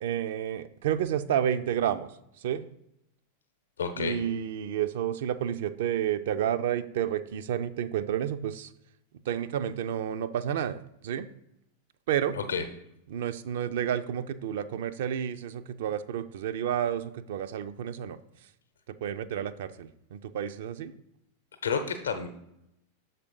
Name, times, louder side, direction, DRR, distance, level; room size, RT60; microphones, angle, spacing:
voice 1, 0.0-2.1 2.4-2.6 4.0-8.7 9.3-11.3 12.1-12.3 13.1-18.2 18.9-20.9, right 9 dB, 55° right, 11 dB, 0.4 m, -30 dB
voice 2, 3.8-4.2 12.3-12.6 21.6-22.3, left 5 dB, 70° left, 8 dB, 0.7 m, -30 dB
6.7 x 4.1 x 5.3 m, 0.80 s
figure-of-eight pair, 90°, 0 cm